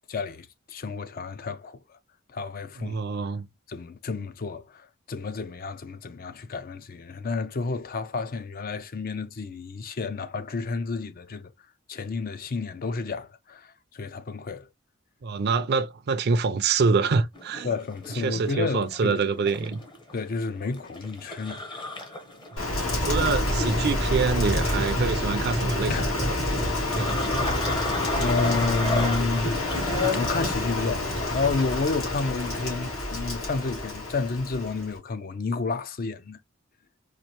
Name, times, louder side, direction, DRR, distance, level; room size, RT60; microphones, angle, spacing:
voice 1, 0.1-2.0 2.3-3.0 3.7-11.5 11.9-14.7 17.6-19.3 20.1-21.8 25.9-26.1 28.2-29.6 30.1-36.4, left 4 dB, 45° left, 0.5 m, -31 dB
voice 2, 2.8-3.5 15.2-17.7 18.1-19.8 22.5-22.7 23.1-26.4 26.9-27.5, right 4 dB, 50° right, 0.4 m, -26 dB
sound 1, 17.3-30.5, left 2 dB, 20° left, 0.8 m, -34 dB
Rain, 22.6-35.0, left 1 dB, 80° left, 2.4 m, -28 dB
4.3 x 2.5 x 2.9 m
head